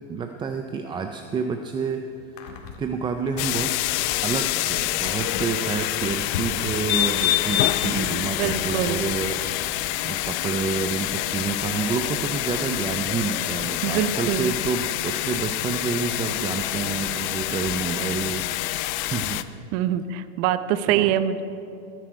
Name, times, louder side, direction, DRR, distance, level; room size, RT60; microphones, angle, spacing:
voice 1, 0.1-3.8 4.2-9.6 10.0-19.4 20.9-21.1, right 5 dB, 15° right, 6 dB, 0.3 m, -29 dB
sound 1, 1.8-1.9 2.2-9.8 10.8-10.9 11.5-11.6 12.1-12.2, left 5 dB, 80° left, 2.2 m, -39 dB
sound 2, 3.4-19.4, left 16 dB, 50° left, 0.6 m, -27 dB
voice 2, 8.2-9.0 13.8-14.5 19.7-21.4, right 11 dB, 55° right, 12 dB, 0.8 m, -24 dB
19.0 x 10.0 x 4.5 m, 2.6 s
supercardioid pair, 130°, 37 cm